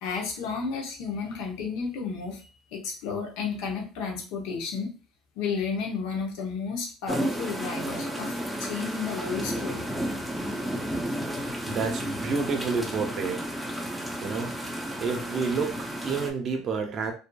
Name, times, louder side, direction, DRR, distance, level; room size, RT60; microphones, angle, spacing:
voice 1, 0.0-4.9 5.4-9.8, left 5 dB, 75° left, 1 dB, 0.8 m, -32 dB
sound 1, 7.1-16.3, equal, ahead, 0.5 m, -32 dB
voice 2, 11.7-13.4 14.2-14.6 15.0-17.1, right 5 dB, 45° right, 4 dB, 0.5 m, -29 dB
2.6 x 2.4 x 2.2 m, 0.35 s
supercardioid pair, 110°, 0 cm